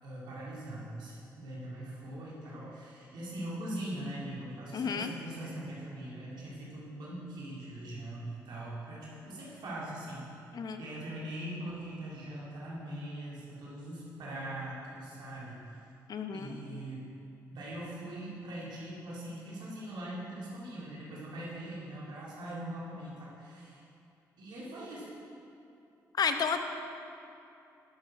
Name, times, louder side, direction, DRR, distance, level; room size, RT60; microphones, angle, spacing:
voice 1, 0.0-10.3 10.8-15.8 16.3-17.1 17.5-23.8 24.4-25.1, right 1 dB, 65° right, -6 dB, 2.3 m, -41 dB
voice 2, 4.7-5.1 10.5-10.8 16.1-16.6 26.2-26.6, left 6 dB, 55° left, 7 dB, 0.9 m, -31 dB
11.5 x 6.9 x 4.7 m, 2.7 s
hypercardioid pair, 50°, 8 cm